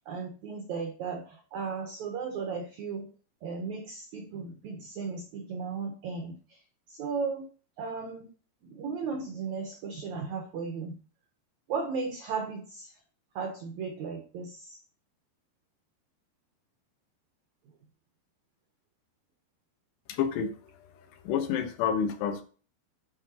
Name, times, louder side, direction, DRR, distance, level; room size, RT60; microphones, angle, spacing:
voice 1, 0.0-3.1 3.4-6.6 6.9-7.5 7.8-8.3 8.6-11.0 11.7-12.9 13.3-14.8, right 5 dB, 85° right, 5 dB, 1.6 m, -35 dB
voice 2, 20.1-20.6 20.9-22.4, left 7 dB, 90° left, 8 dB, 3.2 m, -29 dB
10.5 x 5.8 x 2.8 m, 0.38 s
omnidirectional pair, 4.8 m